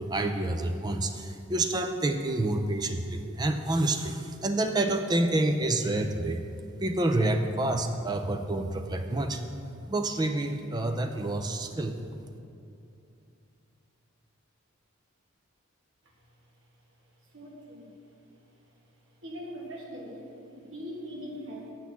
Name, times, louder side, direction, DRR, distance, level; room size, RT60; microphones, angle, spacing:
voice 1, 0.0-6.4 6.8-9.4 9.9-11.9, right 2 dB, 20° right, 6 dB, 0.4 m, -28 dB
voice 2, 17.3-17.9 19.2-21.7, equal, 65° right, -1 dB, 1.6 m, -41 dB
7.6 x 6.1 x 6.9 m, 2.7 s
head